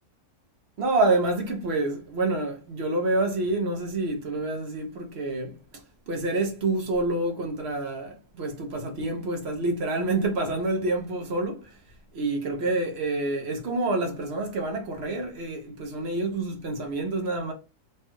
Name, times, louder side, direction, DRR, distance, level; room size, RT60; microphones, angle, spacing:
voice 1, 0.8-5.6 6.1-11.7 12.2-17.5, right 2 dB, 50° right, 0.9 m, -27 dB
3.2 x 2.4 x 2.9 m
omnidirectional pair, 1.7 m